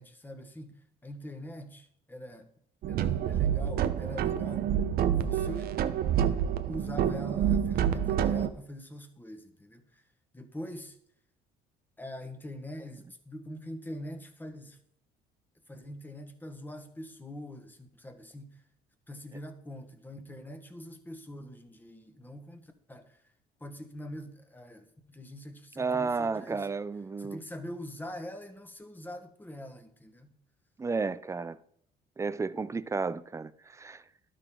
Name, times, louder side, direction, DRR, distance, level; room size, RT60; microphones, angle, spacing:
voice 1, 0.0-2.5 2.9-4.7 5.0-5.7 6.7-10.0 10.3-11.0 12.0-14.8 15.7-18.6 19.1-23.2 23.6-26.7 27.2-30.3, equal, 10° left, 1.4 m, -43 dB
sound 1, 2.8-8.5, right 9 dB, 65° right, 0.8 m, -28 dB
voice 2, 25.8-27.4 30.8-31.6 32.2-34.0, right 4 dB, 15° right, 0.5 m, -32 dB
12.0 x 9.0 x 3.8 m
cardioid pair, 110°, 17 cm